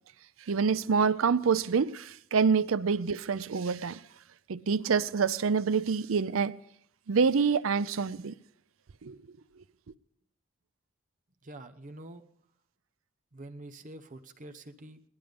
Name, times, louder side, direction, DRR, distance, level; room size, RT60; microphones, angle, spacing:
voice 1, 0.4-4.0 4.5-6.5 7.1-8.3 9.0-9.2 9.6-9.7, right 5 dB, 75° right, 0.5 m, -27 dB
voice 2, 11.4-12.2 13.3-15.0, right 1 dB, 40° right, 0.9 m, -46 dB
18.0 x 11.5 x 5.2 m
head